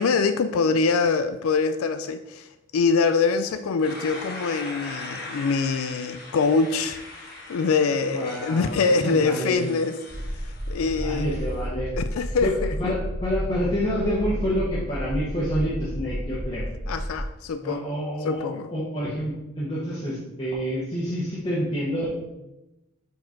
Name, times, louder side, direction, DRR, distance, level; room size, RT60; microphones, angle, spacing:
voice 1, 0.0-7.0 7.5-9.9 10.3-10.4 10.7-11.3 12.0-12.7 16.9-17.8 18.2-18.7, left 4 dB, 90° left, 10 dB, 0.4 m, -24 dB
sound 1, 3.8-11.7, left 2 dB, 50° left, 1.1 m, -41 dB
voice 2, 8.1-9.7 10.8-11.9 12.4-12.5 12.8-16.7 17.6-22.1, equal, 25° left, -8 dB, 1.0 m, -28 dB
sound 2, 10.1-17.2, equal, 40° right, 1.0 m, -31 dB
4.8 x 4.3 x 4.5 m, 0.96 s
head